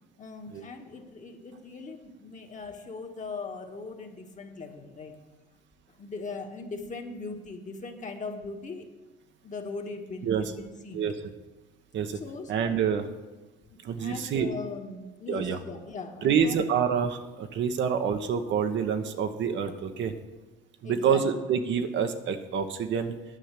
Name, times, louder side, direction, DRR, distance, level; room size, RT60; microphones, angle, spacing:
voice 1, 0.2-5.2 6.0-8.9 9.4-11.0 12.1-12.6 14.0-16.8 20.8-21.2, left 3 dB, 35° left, 3 dB, 1.7 m, -39 dB
voice 2, 12.5-13.1 13.8-14.5 15.3-15.6 16.2-20.1 20.8-23.1, right 7 dB, 65° right, 7 dB, 1.1 m, -27 dB
9.9 x 5.7 x 8.3 m, 1.2 s
supercardioid pair, 75°, 21 cm